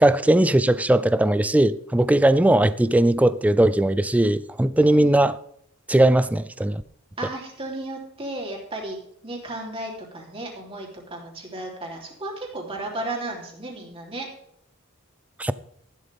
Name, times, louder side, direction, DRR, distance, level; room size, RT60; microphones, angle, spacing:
voice 1, 0.0-5.3 5.9-6.8 15.4-15.5, right 1 dB, 5° right, 0.3 m, -19 dB
voice 2, 4.8-5.2 7.2-9.0 9.2-14.3, right 2 dB, 25° right, 3.4 m, -34 dB
14.5 x 11.5 x 3.5 m
head